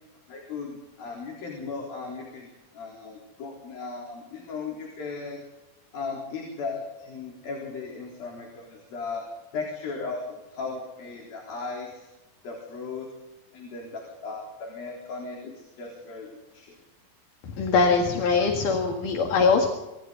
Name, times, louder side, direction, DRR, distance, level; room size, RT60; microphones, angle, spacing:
voice 1, 0.3-2.5 2.7-5.4 5.9-9.3 9.5-12.1 12.4-13.1 13.5-16.8, left 4 dB, 85° left, -1 dB, 5.8 m, -36 dB
voice 2, 17.4-19.7, left 4 dB, 65° left, 3 dB, 3.4 m, -22 dB
27.0 x 25.0 x 4.0 m, 1.0 s
omnidirectional pair, 4.1 m